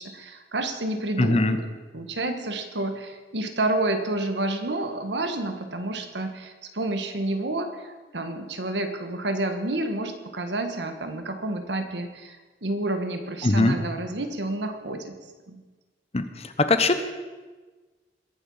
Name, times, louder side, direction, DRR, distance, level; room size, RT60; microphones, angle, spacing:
voice 1, 0.0-1.7 1.9-12.4 12.6-15.1 15.5-15.6, right 2 dB, 80° right, 6 dB, 1.5 m, -29 dB
voice 2, 1.2-1.6 13.4-13.8 16.1-16.2 16.6-17.0, left 2 dB, 35° left, 9 dB, 0.9 m, -20 dB
21.5 x 7.8 x 5.6 m, 1.3 s
head